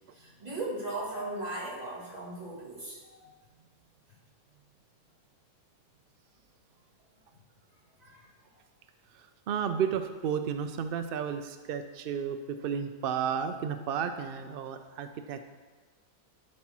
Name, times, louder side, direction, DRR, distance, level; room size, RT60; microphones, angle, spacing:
voice 1, 0.1-3.3 8.0-8.3, right 2 dB, 30° right, -5 dB, 2.3 m, -38 dB
voice 2, 9.1-15.4, right 7 dB, 75° right, 8 dB, 0.5 m, -33 dB
12.0 x 4.3 x 6.0 m, 1.4 s
omnidirectional pair, 1.5 m